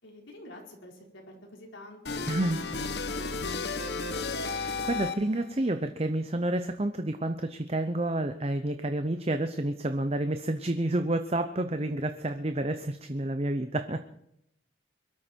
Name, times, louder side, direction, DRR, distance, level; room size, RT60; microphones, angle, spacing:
voice 1, 0.0-2.6 2.9-4.2, left 1 dB, 85° left, -1 dB, 4.8 m, -48 dB
sound 1, 2.1-5.5, left 4 dB, 60° left, 1.2 m, -33 dB
voice 2, 2.3-2.6 4.5-14.1, right 1 dB, 30° right, 8 dB, 0.7 m, -29 dB
22.5 x 13.0 x 4.6 m, 0.78 s
head